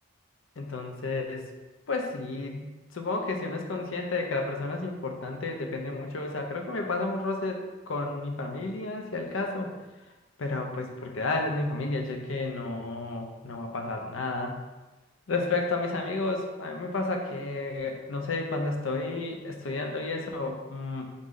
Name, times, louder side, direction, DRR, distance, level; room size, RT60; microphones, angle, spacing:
voice 1, 0.6-1.5 1.9-9.7 10.4-14.6 15.3-21.1, left 3 dB, 75° left, 3 dB, 0.6 m, -31 dB
3.9 x 3.1 x 3.8 m, 1.1 s
head